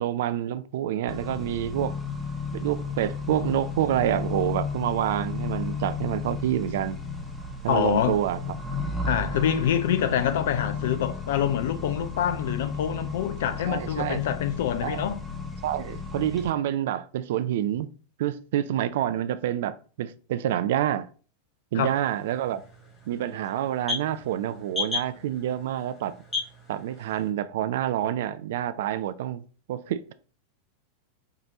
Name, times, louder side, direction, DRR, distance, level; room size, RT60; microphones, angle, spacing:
voice 1, 0.0-1.9 2.5-7.0 7.6-8.6 12.3-12.4 13.7-14.2 14.8-15.0 15.6-17.9 18.2-21.1 21.7-22.6 23.1-26.1 26.7-30.1, right 11 dB, 55° right, 0.3 m, -28 dB
Accelerating revving vroom, 1.1-16.5, left 4 dB, ahead, 1.0 m, -34 dB
voice 2, 7.7-8.2 9.1-15.2 21.7-21.9, left 9 dB, 55° left, 0.5 m, -26 dB
sound 1, 21.8-27.3, left 4 dB, 20° left, 1.9 m, -36 dB
4.7 x 2.9 x 2.7 m
figure-of-eight pair, 90°, 0 cm